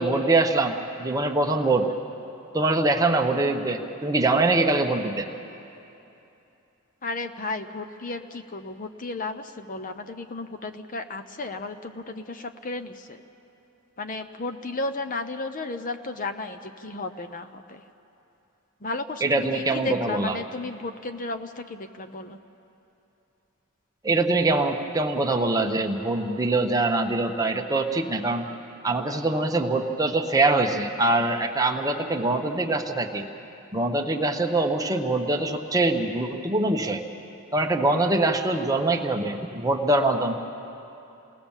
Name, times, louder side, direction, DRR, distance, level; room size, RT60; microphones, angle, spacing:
voice 1, 0.0-1.9 2.5-5.3 19.2-20.4 24.0-28.4 28.8-33.3 33.7-37.0 37.5-40.3, right 2 dB, 15° right, 3 dB, 1.1 m, -23 dB
voice 2, 7.0-13.2 14.0-17.8 18.8-22.4, left 3 dB, 40° left, 8 dB, 0.8 m, -34 dB
28.5 x 19.0 x 7.3 m, 2.9 s
head